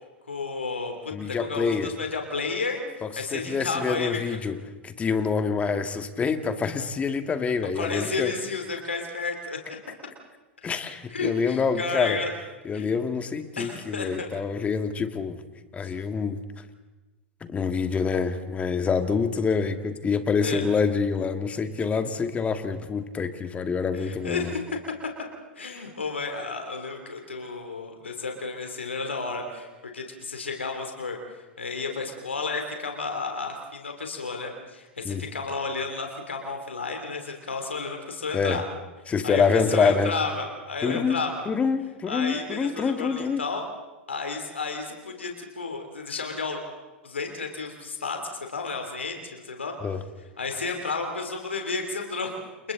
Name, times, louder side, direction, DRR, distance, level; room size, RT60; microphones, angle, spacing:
voice 1, 0.3-4.4 7.8-9.6 10.6-10.8 11.1-12.3 12.7-12.9 13.6-14.3 15.8-15.9 20.4-20.6 23.9-24.6 25.5-38.6 39.1-41.5 42.1-43.7 44.1-46.6 47.0-48.2 48.5-49.7 50.4-52.3, left 4 dB, 85° left, 3 dB, 3.2 m, -32 dB
voice 2, 1.1-1.9 3.0-4.6 4.8-8.3 10.6-12.2 12.7-15.4 15.7-16.4 17.4-24.5 25.7-25.8 35.0-35.2 38.3-38.6 39.1-40.1 40.8-41.2 41.5-43.4 49.8-50.0, left 5 dB, 20° left, 8 dB, 2.0 m, -26 dB
30.0 x 28.5 x 4.0 m, 1.2 s
hypercardioid pair, 95°, 6 cm